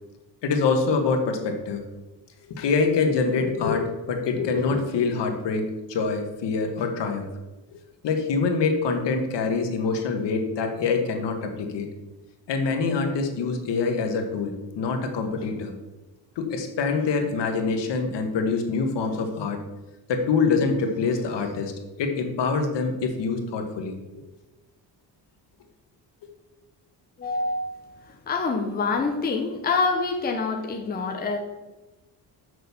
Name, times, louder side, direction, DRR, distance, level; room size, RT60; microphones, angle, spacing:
voice 1, 0.4-1.8 2.5-7.3 7.7-7.8 8.0-11.9 12.5-15.7 16.3-19.6 20.1-21.7 22.0-24.0, left 4 dB, 70° left, 4 dB, 1.6 m, -25 dB
voice 2, 27.2-27.9 28.3-31.4, left 4 dB, 20° left, 3 dB, 0.8 m, -26 dB
6.5 x 6.4 x 7.0 m, 1.1 s
cardioid pair, 180°, 44 cm